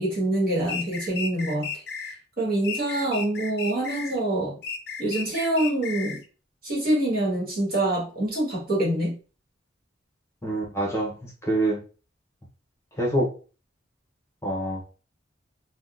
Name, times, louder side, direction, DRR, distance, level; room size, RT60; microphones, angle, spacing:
voice 1, 0.0-1.7 2.4-4.5 5.0-6.2 6.6-9.2, right 1 dB, 55° right, -4 dB, 1.5 m, -25 dB
sound 1, 0.7-2.1 2.6-4.2 4.6-6.2, left 5 dB, 60° left, 0.5 m, -34 dB
voice 2, 10.4-11.8 13.0-13.3 14.4-14.8, right 1 dB, 15° left, -2 dB, 0.8 m, -26 dB
3.5 x 2.2 x 2.5 m, 0.36 s
head